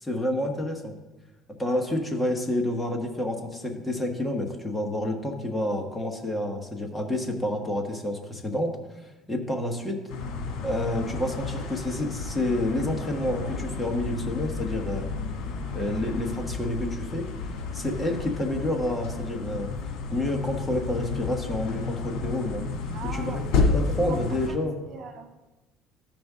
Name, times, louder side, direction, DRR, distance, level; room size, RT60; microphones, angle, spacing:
voice 1, 0.0-0.9 1.6-8.7 9.3-10.0 10.6-15.1 15.7-17.3 17.7-19.7 20.1-22.6 23.0-24.7, left 1 dB, 10° left, 1 dB, 1.2 m, -29 dB
sound 1, 10.1-24.5, left 4 dB, 70° left, 1.8 m, -31 dB
voice 2, 22.9-24.6 24.9-25.4, right 4 dB, 55° right, 5 dB, 1.0 m, -41 dB
14.5 x 5.2 x 3.6 m, 1.1 s
cardioid pair, 130°, 0 cm